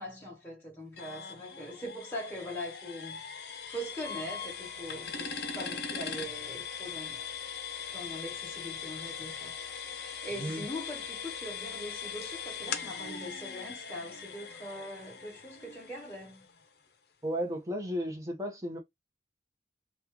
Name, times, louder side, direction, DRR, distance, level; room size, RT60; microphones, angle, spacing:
voice 1, 0.0-3.2 3.7-7.2 7.9-9.6 9.9-16.5, equal, 10° left, 1.8 m, -42 dB
sound 1, 1.0-16.6, left 6 dB, 60° left, 0.7 m, -40 dB
voice 2, 17.2-18.8, equal, 15° right, 0.8 m, -34 dB
3.0 x 2.3 x 3.6 m
head